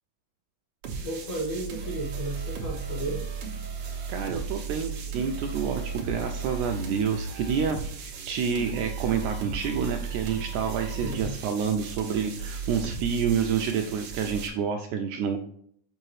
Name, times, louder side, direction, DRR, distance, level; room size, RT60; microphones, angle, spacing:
sound 1, 0.8-14.5, right 5 dB, 65° right, 1.6 m, -35 dB
voice 1, 1.0-3.3 10.9-11.3, right 1 dB, 60° left, -1 dB, 2.7 m, -33 dB
voice 2, 4.1-15.4, right 7 dB, 80° right, 4 dB, 1.8 m, -28 dB
6.6 x 6.1 x 3.2 m, 0.65 s
omnidirectional pair, 3.9 m